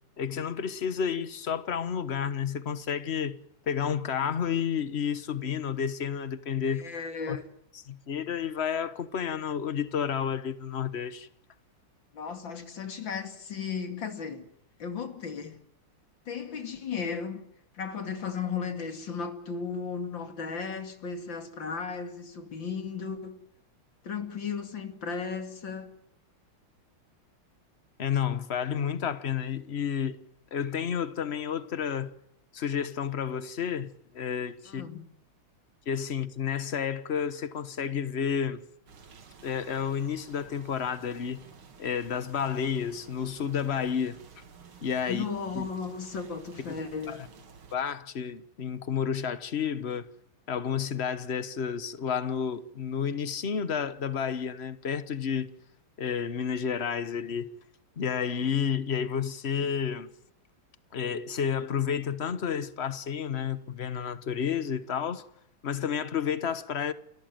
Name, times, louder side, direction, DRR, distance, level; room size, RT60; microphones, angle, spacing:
voice 1, 0.2-3.4 3.7-6.8 7.3-7.4 7.9-11.3 28.0-30.2 30.5-32.1 32.5-34.9 35.9-38.6 39.4-41.4 41.8-44.2 44.8-45.2 45.5-45.7 47.1-47.2 47.7-50.1 50.5-55.6 56.0-57.5 58.0-60.1 60.9-65.3 65.6-66.9, left 7 dB, 40° left, 1.1 m, -31 dB
voice 2, 6.7-7.5 12.1-14.5 14.8-15.6 16.3-17.4 17.7-23.4 24.0-25.9 34.7-35.1 45.1-47.2, left 6 dB, 60° left, 3.0 m, -35 dB
sound 1, 38.9-47.8, right 6 dB, 70° right, 2.9 m, -52 dB
29.0 x 14.5 x 9.2 m
omnidirectional pair, 2.3 m